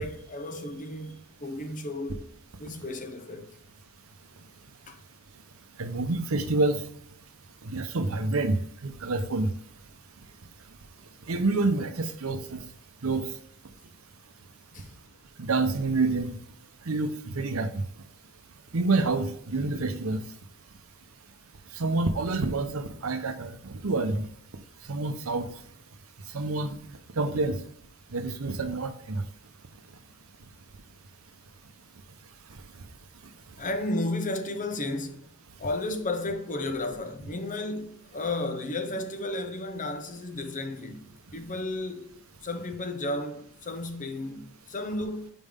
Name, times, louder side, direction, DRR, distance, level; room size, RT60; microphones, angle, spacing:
voice 1, 0.0-2.2 2.6-3.5 4.9-5.0 14.7-15.0 33.6-35.3 35.6-41.0 41.3-42.1 42.4-45.3, left 2 dB, 40° left, 0.8 m, -33 dB
voice 2, 5.8-6.8 7.6-8.6 8.8-9.5 11.3-12.6 13.0-13.3 15.4-16.4 16.9-17.8 18.7-20.2 21.7-24.3 24.9-25.5 26.3-26.8 27.2-27.6 28.1-29.2, right 3 dB, 75° right, 0.8 m, -27 dB
5.4 x 5.1 x 3.6 m
head